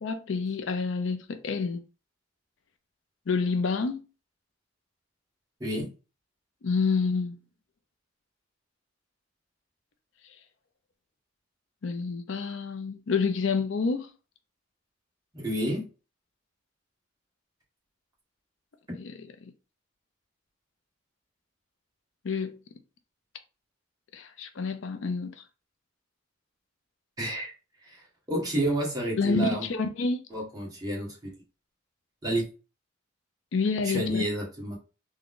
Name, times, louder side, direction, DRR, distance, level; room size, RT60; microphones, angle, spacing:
voice 1, 0.0-1.8 3.3-4.1 6.6-7.4 11.8-14.1 18.9-19.2 22.2-22.6 24.1-25.4 29.2-30.2 33.5-34.2, left 4 dB, 70° left, 0.5 m, -28 dB
voice 2, 15.3-15.9 27.2-27.5 27.8-29.7 30.3-31.3 32.2-32.5 33.8-34.8, right 1 dB, 20° right, 1.5 m, -30 dB
3.6 x 2.2 x 3.6 m
head